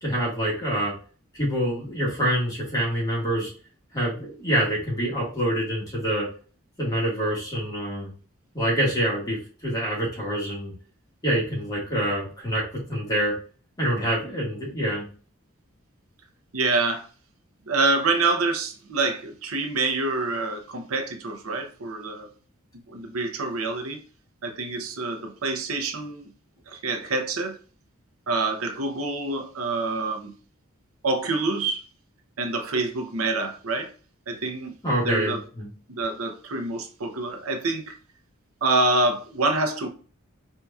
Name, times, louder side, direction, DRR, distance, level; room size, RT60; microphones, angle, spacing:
voice 1, 0.0-0.9 1.3-3.5 3.9-6.3 6.8-8.1 8.5-10.7 11.2-12.6 12.9-13.4 13.8-15.1 34.8-35.7, right 1 dB, 20° left, 1.7 m, -26 dB
voice 2, 16.5-17.1 17.7-22.3 22.9-24.0 24.4-26.2 26.7-27.6 28.3-30.3 31.0-31.8 32.4-33.9 34.3-34.7 35.0-35.4 35.9-37.9 38.6-39.9, right 3 dB, 90° right, 0.7 m, -26 dB
4.5 x 2.7 x 2.3 m
head